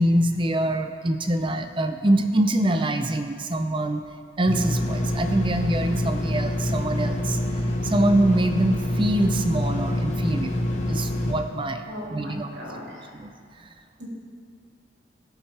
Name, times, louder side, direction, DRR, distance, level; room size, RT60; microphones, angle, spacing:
voice 1, 0.0-4.1 4.4-7.4 7.8-12.5 13.1-13.3 13.6-13.7, right 1 dB, 25° right, 7 dB, 0.6 m, -24 dB
sound 1, 4.5-11.3, left 1 dB, 40° left, 1.1 m, -26 dB
voice 2, 11.9-13.2 14.0-14.1, equal, 85° right, -5 dB, 3.1 m, -37 dB
18.5 x 7.2 x 3.4 m, 2.1 s
head